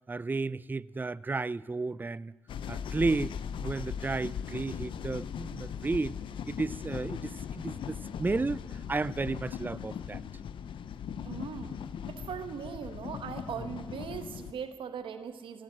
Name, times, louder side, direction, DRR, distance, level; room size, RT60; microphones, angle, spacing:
voice 1, 0.1-2.3 2.7-3.3 3.6-6.2 6.5-8.6 8.9-10.2, right 3 dB, 20° right, 0.4 m, -32 dB
sound 1, 2.5-14.5, left 8 dB, 75° left, 0.5 m, -39 dB
voice 2, 11.2-11.8 12.1-15.6, right 7 dB, 80° right, 1.0 m, -39 dB
16.5 x 8.9 x 7.4 m
supercardioid pair, 45°, 9 cm